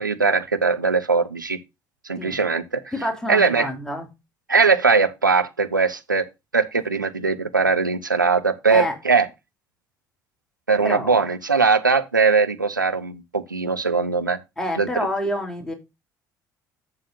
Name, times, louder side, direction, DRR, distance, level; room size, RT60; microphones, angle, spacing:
voice 1, 0.0-1.6 2.0-2.8 3.3-3.7 4.5-6.3 6.5-9.3 10.7-14.4 14.8-14.9, right 4 dB, 90° right, 0.7 m, -20 dB
voice 2, 2.9-4.1 8.7-8.9 10.8-11.3 14.6-15.7, left 1 dB, 5° left, 3.2 m, -27 dB
11.5 x 7.2 x 2.6 m
figure-of-eight pair, 55°, 10 cm